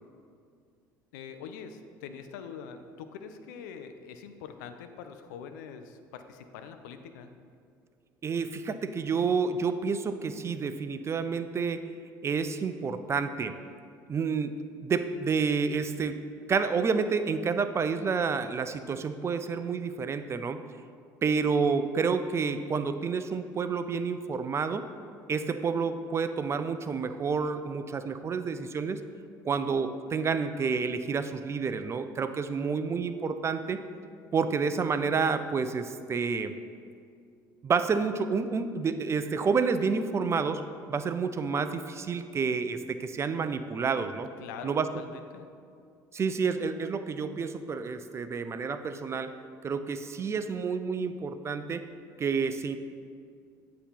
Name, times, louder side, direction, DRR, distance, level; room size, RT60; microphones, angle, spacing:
voice 1, 1.1-7.3 44.4-45.5, left 6 dB, 65° left, 8 dB, 0.4 m, -44 dB
voice 2, 8.2-11.8 12.2-13.5 14.1-14.6 14.8-16.2 16.5-20.6 21.2-24.8 25.3-29.0 29.4-33.8 34.3-36.5 37.6-40.6 40.9-44.3 44.6-44.9 46.1-49.3 49.6-51.8 52.2-52.8, right 5 dB, 25° right, 10 dB, 0.3 m, -29 dB
8.1 x 2.9 x 5.7 m, 2.3 s
figure-of-eight pair, 60°, 11 cm